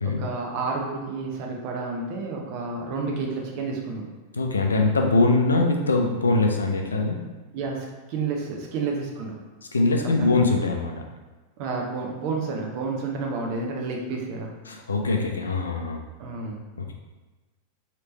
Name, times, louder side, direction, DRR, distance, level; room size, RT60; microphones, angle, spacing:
voice 1, 0.0-4.1 7.5-9.3 10.0-10.3 11.6-14.5 16.2-16.6, right 4 dB, 45° right, 0 dB, 0.7 m, -30 dB
voice 2, 4.3-7.2 9.7-11.0 14.7-16.0 16.8-16.9, left 3 dB, 75° left, 2 dB, 0.4 m, -22 dB
3.2 x 2.9 x 3.2 m, 1.2 s
figure-of-eight pair, 90°, 0 cm